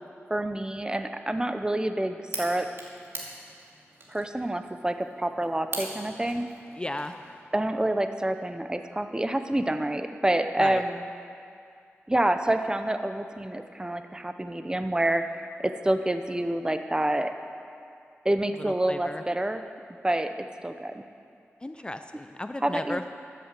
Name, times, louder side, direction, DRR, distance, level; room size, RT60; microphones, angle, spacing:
voice 1, 0.3-2.7 4.1-6.5 7.5-11.0 12.1-17.3 18.2-19.6 20.0-20.3 20.6-21.0 22.6-23.0, right 1 dB, 15° right, 8 dB, 0.7 m, -27 dB
sound 1, 2.3-7.4, right 2 dB, 55° right, 2.5 m, -42 dB
voice 2, 6.8-7.2 10.6-10.8 18.6-19.2 21.6-23.1, left 1 dB, 20° left, 8 dB, 0.4 m, -35 dB
13.5 x 7.6 x 7.5 m, 2.4 s
wide cardioid pair, 70°, 5 cm